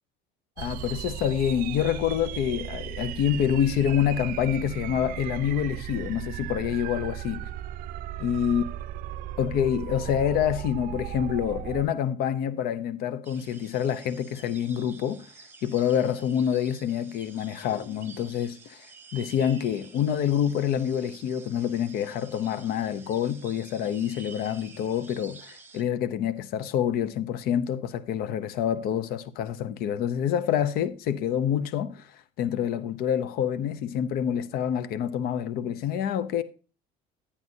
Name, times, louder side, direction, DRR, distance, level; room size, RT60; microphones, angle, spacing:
voice 1, 0.6-7.4 8.2-8.6 9.4-15.3 15.6-18.9 19.1-36.4, left 9 dB, 60° left, 0.6 m, -27 dB
sound 1, 0.6-11.9, right 12 dB, 55° right, 0.5 m, -36 dB
sound 2, 13.2-25.8, right 5 dB, 10° right, 1.2 m, -50 dB
10.5 x 9.8 x 2.6 m
cardioid pair, 125°, 18 cm